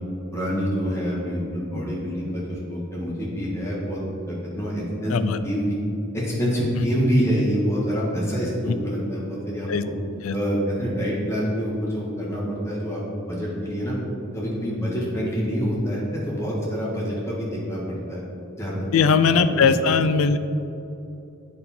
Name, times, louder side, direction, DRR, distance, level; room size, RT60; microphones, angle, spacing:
voice 1, 0.3-4.0 4.3-5.1 5.4-5.8 6.1-9.7 10.3-14.0 14.3-18.2 18.6-19.0 19.5-19.7, equal, 15° left, -6 dB, 1.6 m, -26 dB
voice 2, 18.9-20.4, left 5 dB, 85° left, 11 dB, 0.4 m, -19 dB
8.5 x 4.2 x 4.3 m, 2.8 s
head